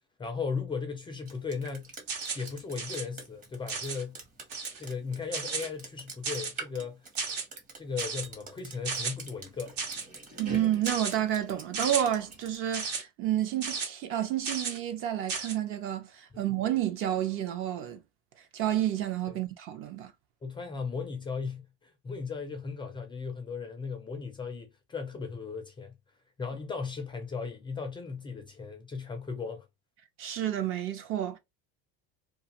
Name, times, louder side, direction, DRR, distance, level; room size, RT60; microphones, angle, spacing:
voice 1, 0.2-1.9 2.3-4.2 4.8-7.0 7.8-9.7 16.3-16.4 20.4-25.9 26.4-29.7, left 5 dB, 15° left, 0.4 m, -36 dB
Drip, 1.3-12.6, right 3 dB, 25° right, 0.9 m, -45 dB
sound 1, 2.1-2.5 2.8-3.0 3.7-4.0 4.5-4.8 5.3-5.7 6.2-6.6 7.2-7.4 8.0-8.2 8.8-9.1 9.8-10.1 10.8-11.1 11.7-12.0 12.7-13.0 13.6-13.9 14.4-14.8 15.3-15.5, right 5 dB, 75° right, 1.2 m, -34 dB
voice 2, 10.4-18.0 18.5-20.1 30.2-31.4, right 11 dB, 45° right, 0.6 m, -30 dB
2.4 x 2.4 x 2.8 m
cardioid pair, 140°, 30 cm